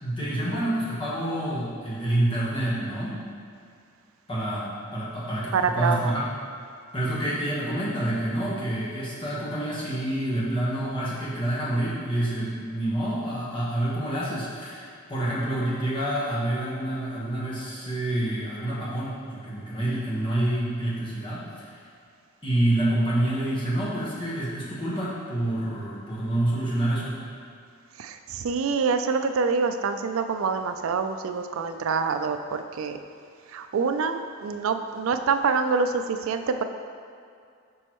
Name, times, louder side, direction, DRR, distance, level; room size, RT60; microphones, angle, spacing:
voice 1, 0.0-3.2 4.3-6.2 6.9-21.7 22.4-27.2, right 1 dB, 20° left, -8 dB, 1.2 m, -27 dB
voice 2, 5.5-6.1 28.0-33.0 33.5-36.6, right 5 dB, 65° right, 8 dB, 0.3 m, -26 dB
6.2 x 5.2 x 3.0 m, 2.3 s
head